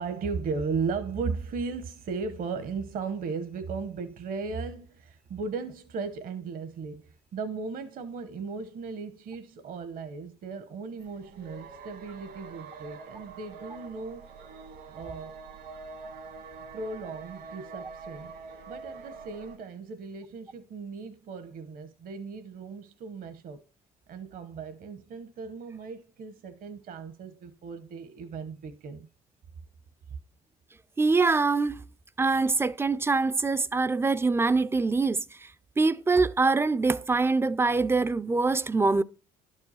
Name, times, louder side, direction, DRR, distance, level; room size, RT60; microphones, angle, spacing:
voice 1, 0.0-14.3 14.9-15.3 16.7-18.4 18.7-23.6 24.1-29.1, right 4 dB, 55° right, 1.0 m, -36 dB
sound 1, 11.0-19.6, right 4 dB, 75° right, 2.0 m, -45 dB
voice 2, 31.0-31.8 32.2-35.2 35.8-39.0, right 3 dB, 15° right, 0.4 m, -24 dB
11.5 x 5.4 x 5.6 m
cardioid pair, 110°, 17 cm